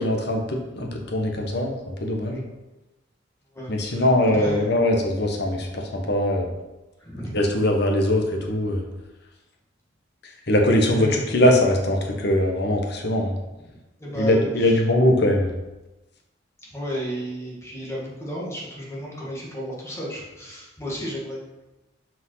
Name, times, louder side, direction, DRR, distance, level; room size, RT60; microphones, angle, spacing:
voice 1, 0.0-2.5 3.7-6.5 7.3-8.8 10.2-13.3 14.1-15.5, left 1 dB, 55° left, 2 dB, 1.3 m, -21 dB
voice 2, 3.5-4.0 4.3-4.6 7.0-7.3 11.0-11.2 13.7-14.7 16.7-21.4, equal, 15° left, -5 dB, 2.1 m, -33 dB
6.2 x 5.3 x 5.7 m, 1.0 s
head